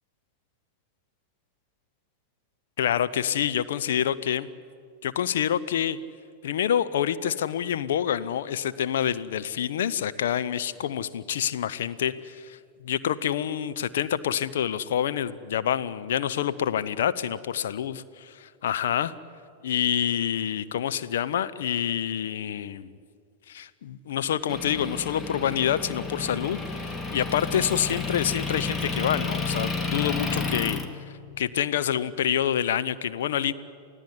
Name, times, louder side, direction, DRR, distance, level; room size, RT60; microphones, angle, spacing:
voice 1, 2.8-4.5 5.0-6.0 6.4-19.1 19.6-22.9 23.5-30.8 31.4-33.5, left 9 dB, 60° left, 12 dB, 0.8 m, -27 dB
Motor vehicle (road) / Engine, 24.5-30.9, left 4 dB, 20° left, 2.3 m, -31 dB
29.0 x 16.0 x 9.9 m, 2.3 s
figure-of-eight pair, 90°, 0 cm